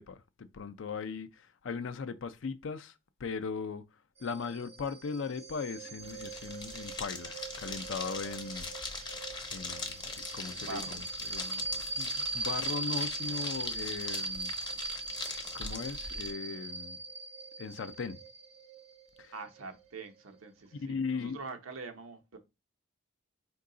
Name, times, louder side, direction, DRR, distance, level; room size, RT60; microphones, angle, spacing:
voice 1, 0.0-2.9 3.2-3.8 4.2-8.7 9.5-14.5 15.5-17.0 17.6-18.2 19.2-19.3 20.8-21.4, left 5 dB, 65° left, 0.4 m, -38 dB
sound 1, 4.2-20.5, right 3 dB, 30° right, 0.4 m, -40 dB
sound 2, 6.0-16.3, left 4 dB, 20° left, 0.7 m, -41 dB
voice 2, 10.5-11.0 19.3-22.4, right 4 dB, 90° right, 0.8 m, -44 dB
4.6 x 2.3 x 3.7 m
head